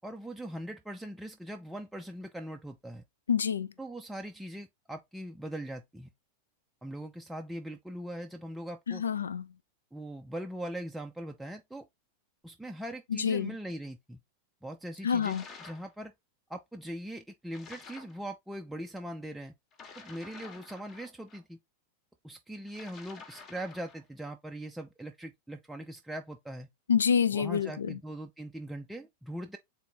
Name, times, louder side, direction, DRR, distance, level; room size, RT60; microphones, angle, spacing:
voice 1, 0.0-3.0 3.8-6.1 6.8-9.0 9.9-11.9 12.4-14.2 14.6-16.1 16.5-19.5 20.0-21.6 22.2-26.7 27.3-29.6, right 1 dB, 5° right, 0.4 m, -41 dB
voice 2, 3.3-3.7 8.9-9.4 13.1-13.5 15.0-15.4 26.9-28.0, left 7 dB, 70° left, 0.4 m, -27 dB
sound 1, 15.2-15.9 17.5-18.2 19.7-21.4 22.7-24.0, left 4 dB, 30° left, 1.0 m, -50 dB
3.7 x 2.6 x 4.3 m
figure-of-eight pair, 90°, 0 cm